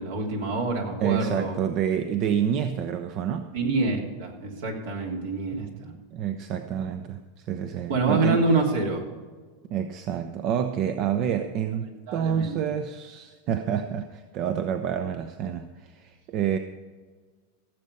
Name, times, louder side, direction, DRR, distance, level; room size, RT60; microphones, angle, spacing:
voice 1, 0.0-1.6 3.5-5.9 7.9-9.0 11.9-12.6, right 3 dB, 75° right, 0 dB, 3.2 m, -26 dB
voice 2, 1.0-3.5 5.5-8.4 9.7-16.6, right 9 dB, 50° right, 8 dB, 0.8 m, -28 dB
16.0 x 7.5 x 5.3 m, 1.4 s
hypercardioid pair, 105°, 0 cm